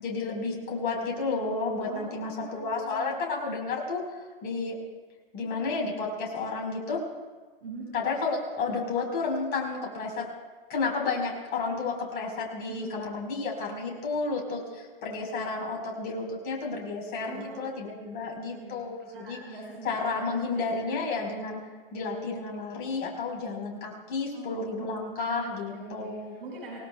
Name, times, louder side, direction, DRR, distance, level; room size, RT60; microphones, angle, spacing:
voice 1, 0.0-4.8 5.3-7.1 7.9-10.3 10.7-19.4 19.8-21.6 21.9-26.4, left 4 dB, 30° left, 0 dB, 4.5 m, -31 dB
voice 2, 1.8-3.2 7.6-7.9 12.7-13.0 17.2-17.7 18.3-18.8 19.1-19.9 20.8-20.9 24.3-26.8, right 3 dB, 70° right, -4 dB, 5.3 m, -43 dB
28.0 x 18.0 x 2.3 m, 1.4 s
hypercardioid pair, 115°, 30 cm